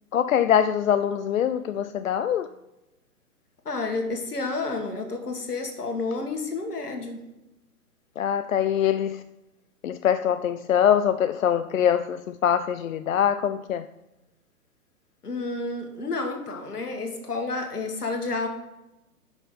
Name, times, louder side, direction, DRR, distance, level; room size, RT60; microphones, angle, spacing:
voice 1, 0.1-2.5 8.2-9.2 9.8-13.9, left 9 dB, 60° left, 11 dB, 0.5 m, -23 dB
voice 2, 3.7-7.2 15.2-18.5, left 3 dB, 80° left, 4 dB, 1.9 m, -30 dB
9.8 x 5.9 x 3.9 m, 0.96 s
figure-of-eight pair, 130°, 45 cm